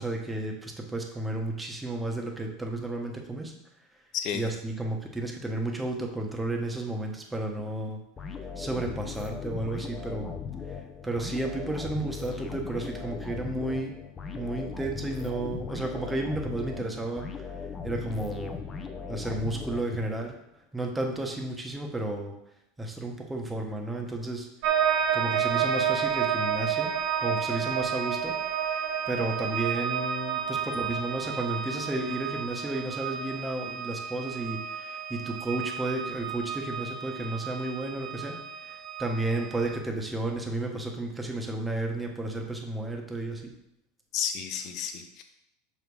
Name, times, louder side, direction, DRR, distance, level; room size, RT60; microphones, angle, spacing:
voice 1, 0.0-3.5 4.3-8.0 8.6-10.3 10.7-13.9 14.3-17.5 17.8-18.6 19.1-20.3 20.7-22.3 22.8-24.5 25.1-26.9 27.2-28.4 28.6-43.5, right 2 dB, 10° right, 2 dB, 1.2 m, -32 dB
sound 1, 8.2-20.3, left 6 dB, 25° left, 0.8 m, -38 dB
sound 2, 24.6-39.8, right 8 dB, 65° right, 1.1 m, -31 dB
voice 2, 44.1-45.2, left 8 dB, 50° left, 6 dB, 1.0 m, -31 dB
5.7 x 4.8 x 5.4 m, 0.81 s
supercardioid pair, 115°, 0 cm